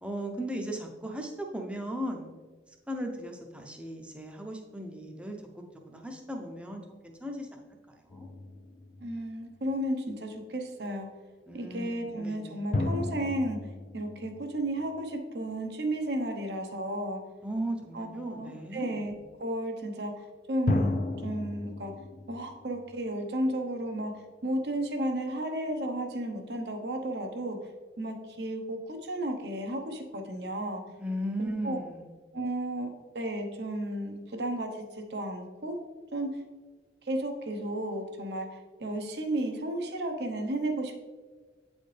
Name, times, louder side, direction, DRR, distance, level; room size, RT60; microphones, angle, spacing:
voice 1, 0.0-2.3 2.9-7.8 8.1-8.3 11.5-12.6 17.4-18.9 31.0-32.0, right 1 dB, 5° right, 2 dB, 0.6 m, -37 dB
sound 1, 8.1-9.8 12.7-15.4 20.7-23.7, left 2 dB, 45° left, 0.4 m, -34 dB
voice 2, 9.0-11.1 11.5-13.6 13.9-17.2 17.9-19.1 19.4-21.9 22.3-27.6 28.0-30.8 31.4-31.8 32.3-32.9 33.1-35.8 36.1-36.3 37.0-40.9, right 1 dB, 70° right, 4 dB, 0.8 m, -33 dB
8.5 x 4.2 x 3.3 m, 1.4 s
head